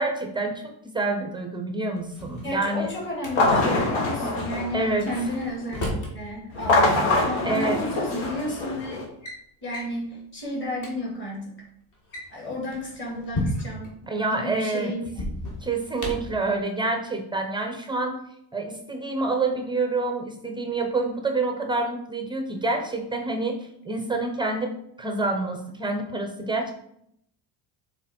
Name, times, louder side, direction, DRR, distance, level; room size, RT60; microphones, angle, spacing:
voice 1, 0.0-2.9 4.7-5.1 7.4-7.8 14.1-14.9 15.6-18.2 18.5-23.6 23.8-24.7 25.0-26.7, right 3 dB, 10° right, 4 dB, 0.5 m, -27 dB
Drawer open or close, 2.0-3.3 5.0-6.2 7.5-7.6 8.4-8.6 8.9-9.4 9.7-10.0 10.5-10.6 10.8-10.9 11.9-13.9 15.1-16.4, left 1 dB, 40° left, 1.7 m, -33 dB
voice 2, 2.4-9.1 9.6-11.6 12.3-13.9 14.2-15.0, left 1 dB, 25° left, -2 dB, 2.0 m, -32 dB
sound 1, 3.2-5.5 6.5-9.0, left 2 dB, 80° left, 1.6 m, -24 dB
6.4 x 3.7 x 4.2 m, 0.73 s
cardioid pair, 160°, 45 cm